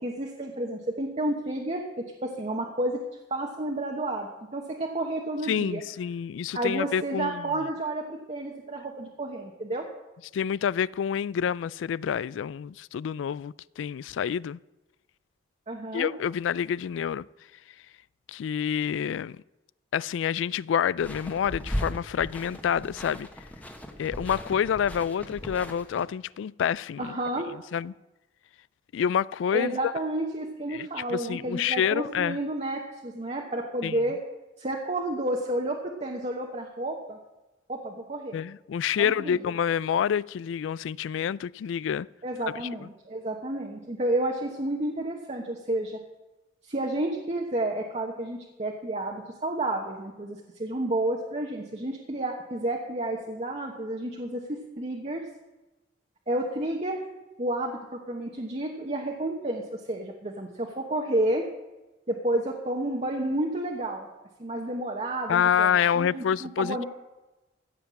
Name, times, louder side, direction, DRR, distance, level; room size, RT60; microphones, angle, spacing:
voice 1, 0.0-3.0 3.3-5.8 6.5-9.9 15.7-16.1 27.0-27.5 29.5-34.2 34.6-37.2 37.7-38.4 39.0-39.4 42.2-46.0 46.6-55.2 56.3-57.0 57.4-61.4 62.1-64.1 64.4-66.8, right 1 dB, 35° right, 1.1 m, -31 dB
voice 2, 5.5-7.5 10.3-14.6 15.9-17.3 18.3-19.4 19.9-23.3 24.0-27.2 27.7-27.9 28.9-29.9 30.7-32.4 33.8-34.0 38.3-42.1 42.8-42.9 65.3-66.8, left 8 dB, 85° left, 0.3 m, -28 dB
sound 1, 21.0-26.1, equal, 10° left, 1.2 m, -37 dB
15.0 x 5.8 x 8.5 m
head